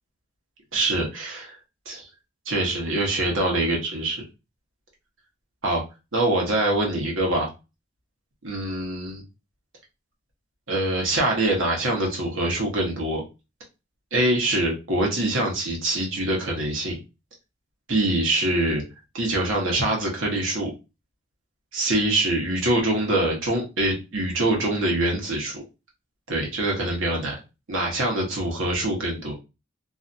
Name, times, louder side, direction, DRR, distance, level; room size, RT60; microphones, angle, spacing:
voice 1, 0.7-1.6 1.9-2.0 2.5-4.2 5.6-5.8 6.1-7.5 8.4-9.2 10.7-13.2 14.1-17.0 17.9-18.8 19.1-20.7 21.7-25.6 26.3-27.3 27.7-29.4, right 1 dB, 85° right, -1 dB, 1.1 m, -24 dB
2.7 x 2.3 x 2.6 m, 0.27 s
head